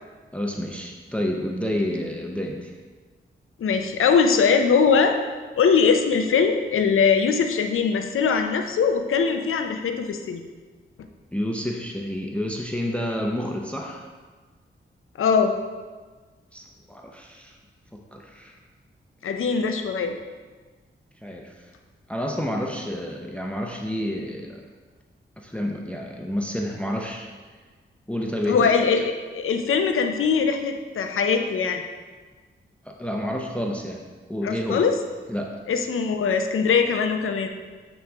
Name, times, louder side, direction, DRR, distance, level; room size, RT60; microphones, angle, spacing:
voice 1, 0.3-2.7 11.3-14.0 16.5-17.5 17.9-18.5 21.2-21.5 22.1-24.6 25.4-27.3 28.1-28.7 32.9-34.0 34.3-34.9 35.3-35.6, left 1 dB, 5° left, 1 dB, 0.6 m, -29 dB
voice 2, 3.6-5.2 5.6-10.4 15.2-15.6 19.2-20.2 28.5-31.8 34.4-35.0 35.7-37.5, left 5 dB, 85° left, 6 dB, 0.5 m, -21 dB
8.9 x 3.1 x 3.4 m, 1.4 s
cardioid pair, 70°, 21 cm